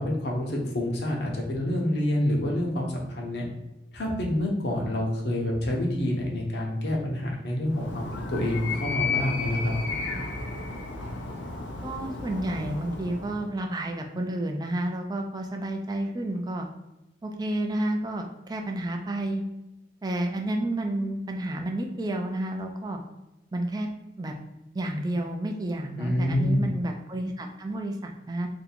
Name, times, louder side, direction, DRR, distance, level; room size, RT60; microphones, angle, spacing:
voice 1, 0.0-3.4 3.9-9.7 26.0-26.7, left 1 dB, 65° left, -1 dB, 0.8 m, -27 dB
Animal, 7.7-13.5, left 4 dB, 90° left, 0.5 m, -33 dB
voice 2, 11.8-16.7 17.2-19.4 20.0-23.0 23.5-23.9 24.2-24.3 24.7-28.5, right 1 dB, 20° right, 3 dB, 0.3 m, -30 dB
2.7 x 2.6 x 4.1 m, 0.95 s
head